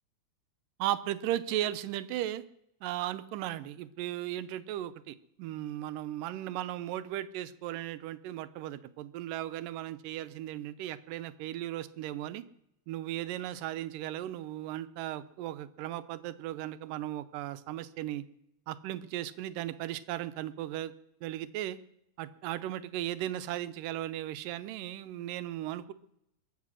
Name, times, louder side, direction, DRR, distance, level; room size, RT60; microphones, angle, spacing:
voice 1, 0.8-2.4 2.8-12.4 12.9-18.2 18.7-20.9 21.2-21.8 22.2-25.9, right 13 dB, 90° right, 12 dB, 2.4 m, -36 dB
22.5 x 7.9 x 6.3 m, 0.81 s
omnidirectional pair, 3.7 m